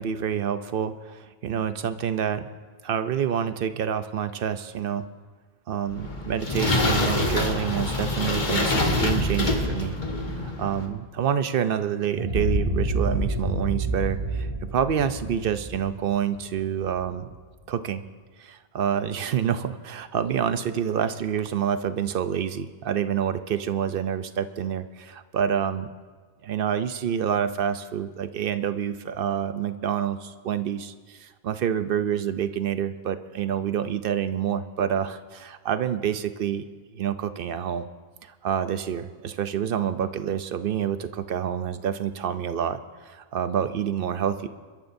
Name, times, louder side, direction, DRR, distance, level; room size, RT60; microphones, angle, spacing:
voice 1, 0.0-2.5 2.8-5.1 5.7-10.0 10.3-17.3 17.7-18.0 18.4-25.9 26.4-36.7 36.9-37.9 38.2-44.5, right 8 dB, 65° right, 11 dB, 0.8 m, -27 dB
sound 1, 5.9-10.9, left 2 dB, 50° left, 1.5 m, -25 dB
sound 2, 12.2-16.9, right 1 dB, 30° right, 3.1 m, -28 dB
28.0 x 13.0 x 2.6 m, 1.5 s
omnidirectional pair, 1.1 m